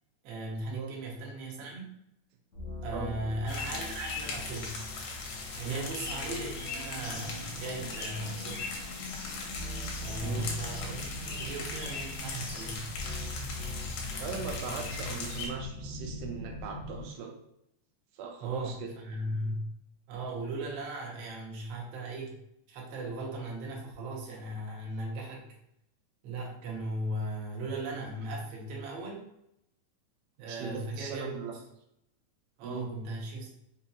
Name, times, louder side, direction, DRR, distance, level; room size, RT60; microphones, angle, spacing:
voice 1, 0.2-1.9 2.8-4.7 5.5-8.7 10.0-12.9 18.4-19.6 20.1-22.4 22.7-25.5 26.2-29.3 30.4-31.4 32.6-33.5, right 1 dB, 70° right, -1 dB, 1.6 m, -37 dB
sound 1, 2.5-16.4, left 1 dB, 45° left, 1.0 m, -44 dB
sound 2, 3.5-15.5, left 4 dB, 70° left, 1.6 m, -39 dB
sound 3, 4.1-17.1, left 1 dB, 85° left, 1.3 m, -44 dB
voice 2, 10.2-10.5 14.2-17.4 18.1-18.9 30.5-31.5 32.6-32.9, right 5 dB, 85° right, 3 dB, 2.1 m, -38 dB
5.3 x 2.7 x 2.3 m, 0.77 s
omnidirectional pair, 3.6 m